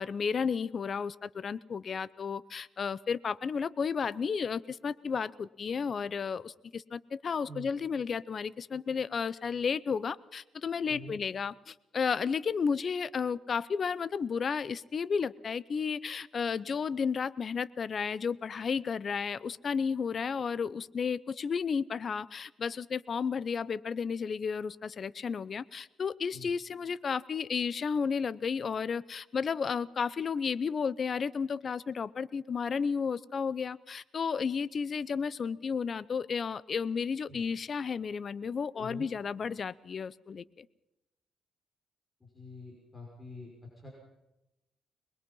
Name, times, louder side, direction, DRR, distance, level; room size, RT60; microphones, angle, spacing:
voice 1, 0.0-40.7, left 6 dB, 45° left, 19 dB, 0.7 m, -33 dB
voice 2, 10.9-11.2 26.3-26.5 37.3-37.4 38.7-39.1 42.2-43.9, left 1 dB, 20° left, -1 dB, 5.8 m, -46 dB
23.0 x 21.0 x 5.6 m, 0.94 s
cardioid pair, 90°, 0 cm